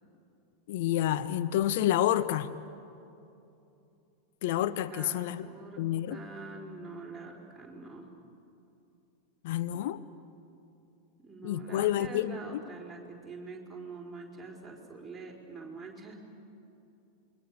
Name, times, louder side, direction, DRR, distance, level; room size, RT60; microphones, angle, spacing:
voice 1, 0.7-2.5 4.4-5.5 5.8-6.2 9.4-10.0 11.4-12.6, left 12 dB, 50° left, 13 dB, 0.6 m, -29 dB
voice 2, 4.8-8.1 11.2-16.2, right 3 dB, 5° right, -2 dB, 4.5 m, -45 dB
28.0 x 22.0 x 6.7 m, 2.7 s
figure-of-eight pair, 90°, 0 cm